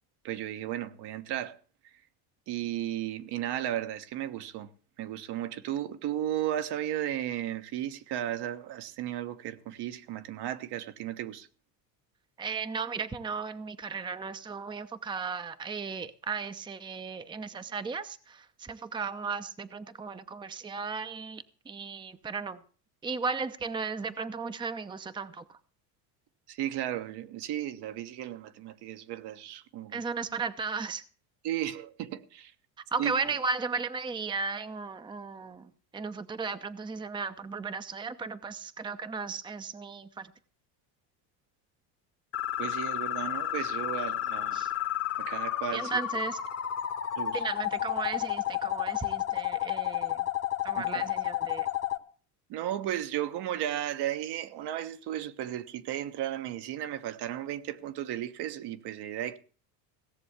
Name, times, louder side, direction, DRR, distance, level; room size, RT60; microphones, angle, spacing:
voice 1, 0.2-1.6 2.5-4.7 5.0-11.5 26.5-30.0 31.4-32.5 33.0-33.4 42.6-44.6 45.2-46.0 47.2-47.5 50.8-51.1 52.5-59.4, right 12 dB, 55° right, 1.2 m, -35 dB
voice 2, 12.4-22.6 23.0-25.4 29.9-31.0 32.9-35.6 35.9-40.3 44.5-44.7 45.7-46.4 47.3-50.2 50.6-51.7, right 5 dB, 10° right, 0.7 m, -35 dB
sound 1, 42.3-52.0, left 12 dB, 30° left, 1.2 m, -31 dB
17.0 x 7.0 x 8.1 m
supercardioid pair, 105°, 46 cm